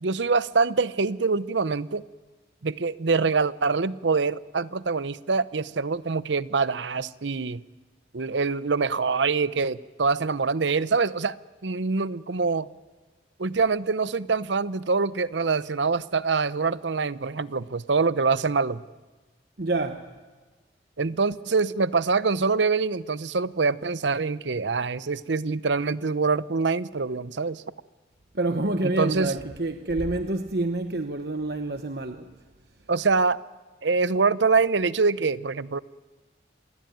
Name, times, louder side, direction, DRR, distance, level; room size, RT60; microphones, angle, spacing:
voice 1, 0.0-2.0 2.6-7.6 8.1-11.4 11.6-12.7 13.4-18.8 21.0-27.6 28.8-29.3 32.9-33.4 33.8-35.8, right 4 dB, 80° right, 0.8 m, -25 dB
voice 2, 19.6-20.1 28.3-32.3, right 2 dB, 60° right, 1.1 m, -27 dB
27.5 x 21.0 x 9.3 m
head